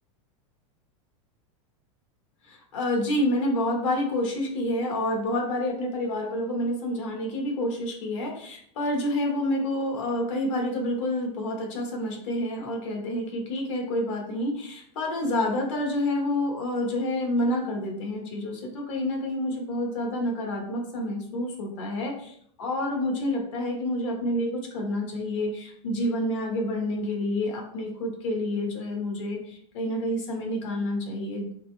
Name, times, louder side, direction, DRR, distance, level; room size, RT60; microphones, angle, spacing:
voice 1, 2.4-31.5, left 1 dB, 65° left, 0 dB, 1.4 m, -28 dB
4.1 x 3.4 x 3.3 m, 0.65 s
supercardioid pair, 165°, 17 cm